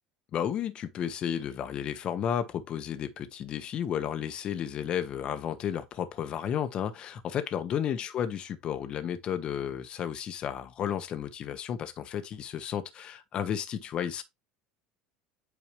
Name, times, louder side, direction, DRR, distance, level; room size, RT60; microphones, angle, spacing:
voice 1, 0.3-14.2, left 9 dB, 45° left, 1.4 m, -33 dB
8.9 x 4.7 x 3.3 m
supercardioid pair, 100°, 2 cm